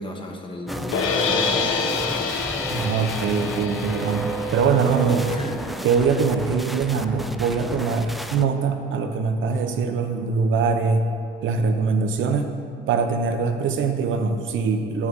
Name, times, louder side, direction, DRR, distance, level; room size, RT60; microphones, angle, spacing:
voice 1, 0.0-2.0 5.2-5.6, left 1 dB, 25° left, 2 dB, 1.2 m, -34 dB
sound 1, 0.7-8.4, right 2 dB, ahead, 0.3 m, -31 dB
sound 2, 0.9-7.1, left 5 dB, 90° left, 0.6 m, -28 dB
voice 2, 2.7-5.3 5.8-11.1 11.4-12.5 12.9-15.1, right 5 dB, 75° right, 6 dB, 0.7 m, -22 dB
7.7 x 5.5 x 6.4 m, 2.3 s
cardioid pair, 90°, 20 cm